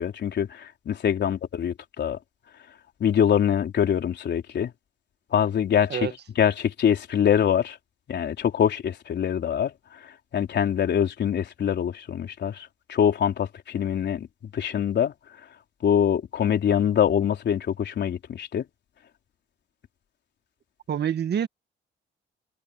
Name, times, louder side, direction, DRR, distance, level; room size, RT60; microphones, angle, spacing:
voice 1, 0.0-2.2 3.0-4.7 5.3-6.1 6.4-7.8 8.1-14.3 14.5-15.1 15.8-18.6, left 8 dB, 60° left, 4.0 m, -24 dB
voice 2, 20.9-21.5, right 9 dB, 55° right, 1.8 m, -26 dB
cardioid pair, 90°, 20 cm